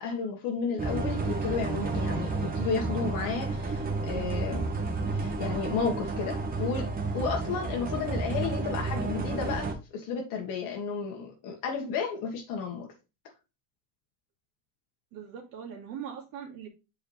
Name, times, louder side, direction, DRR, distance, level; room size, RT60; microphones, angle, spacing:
voice 1, 0.0-4.7 5.1-6.9 7.1-12.9, left 5 dB, 50° left, 1.7 m, -32 dB
sound 1, 0.8-9.7, right 3 dB, 20° right, 1.4 m, -31 dB
voice 2, 15.1-16.7, right 8 dB, 55° right, 2.5 m, -41 dB
8.3 x 4.8 x 3.3 m
cardioid pair, 170°, 42 cm